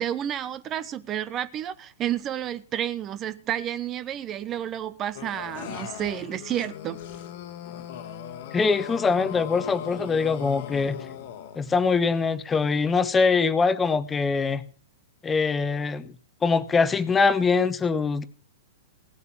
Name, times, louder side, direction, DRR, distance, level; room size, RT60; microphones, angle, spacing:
voice 1, 0.0-7.0, right 11 dB, 30° right, 0.9 m, -30 dB
sound 1, 5.1-11.8, left 10 dB, 55° left, 1.5 m, -39 dB
voice 2, 8.5-11.0 11.6-14.6 15.2-16.1 16.4-18.2, left 4 dB, 15° left, 1.1 m, -23 dB
17.5 x 8.2 x 7.1 m
figure-of-eight pair, 105°, 0 cm